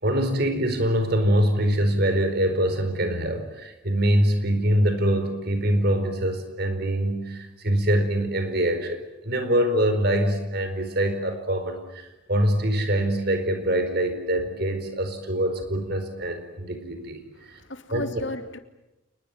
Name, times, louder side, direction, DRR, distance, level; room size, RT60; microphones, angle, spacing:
voice 1, 0.0-17.6 17.9-18.1, right 1 dB, 50° right, 8 dB, 4.7 m, -24 dB
voice 2, 17.4-18.6, left 1 dB, 65° left, 8 dB, 2.5 m, -35 dB
29.0 x 20.5 x 9.4 m, 0.97 s
head